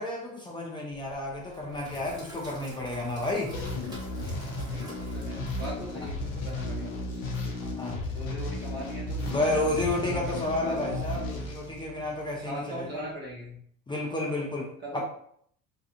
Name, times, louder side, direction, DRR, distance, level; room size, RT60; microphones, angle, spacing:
voice 1, 0.0-3.5 7.8-8.0 9.2-13.0 13.9-15.0, left 2 dB, 10° left, -3 dB, 0.4 m, -31 dB
Sink (filling or washing), 0.9-11.9, right 1 dB, 10° right, 1.1 m, -50 dB
sound 1, 3.5-12.4, left 2 dB, 70° left, 0.6 m, -34 dB
voice 2, 4.6-7.2 8.1-9.5 10.0-11.1 12.4-13.6 14.8-15.0, right 1 dB, 25° right, -4 dB, 1.2 m, -40 dB
2.3 x 2.3 x 2.5 m, 0.64 s
figure-of-eight pair, 55°, 43 cm